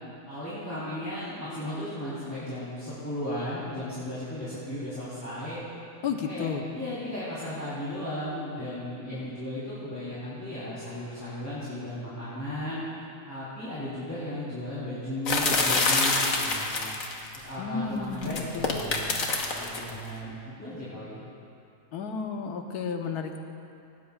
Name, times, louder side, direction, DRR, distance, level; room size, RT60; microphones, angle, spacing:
voice 1, 0.2-5.6 6.3-12.8 13.2-16.9 17.3-19.3 19.6-21.3, left 1 dB, 10° left, -11 dB, 3.3 m, -35 dB
voice 2, 6.0-6.6 17.6-18.8 20.2-20.3 21.9-23.4, left 5 dB, 75° left, 4 dB, 1.5 m, -32 dB
sound 1, 15.3-17.4 18.2-19.9, left 3 dB, 60° left, 1.6 m, -26 dB
18.0 x 18.0 x 2.4 m, 2.6 s
omnidirectional pair, 1.7 m